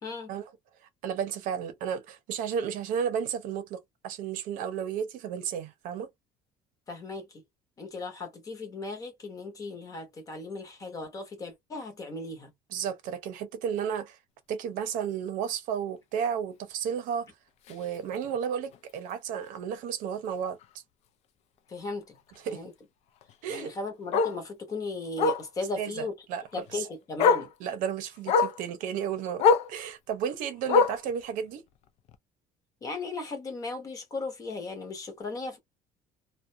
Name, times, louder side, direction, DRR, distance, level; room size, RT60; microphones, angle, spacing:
voice 1, 0.0-0.3 6.9-7.4 7.8-12.5 21.7-22.2 22.5-22.7 23.5-26.2 26.5-27.5 32.8-35.6, left 3 dB, 25° left, 0.8 m, -36 dB
voice 2, 1.0-6.1 12.7-14.2 14.5-17.3 17.7-20.6 22.4-22.6 23.4-23.7 25.8-26.9 27.6-29.4 29.7-31.6, right 8 dB, 65° right, 0.7 m, -33 dB
Bark, 17.7-17.8 18.2-18.4 18.7-18.8 19.1-19.2 20.6-20.7 23.2-23.3 24.1-24.4 25.2-25.5 26.7-26.8 27.2-27.5 28.3-28.6 29.4-29.7 30.7-31.1 32.1-32.2, left 5 dB, 45° left, 0.4 m, -23 dB
2.4 x 2.2 x 2.6 m
cardioid pair, 180°, 15 cm